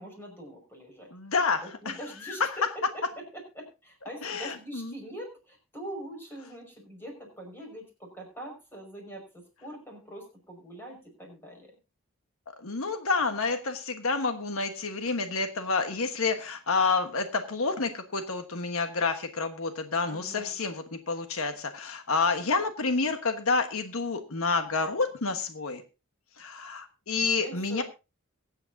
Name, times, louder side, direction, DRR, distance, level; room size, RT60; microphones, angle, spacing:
voice 1, 0.0-1.1 1.6-2.7 2.9-3.0 3.6-11.7 20.1-20.5 27.3-27.8, equal, 10° left, 1 dB, 5.4 m, -43 dB
voice 2, 1.1-1.9 2.2-2.6 4.2-4.9 12.5-25.8 26.4-27.8, left 4 dB, 80° left, 7 dB, 1.3 m, -29 dB
23.0 x 8.9 x 2.7 m, 0.29 s
head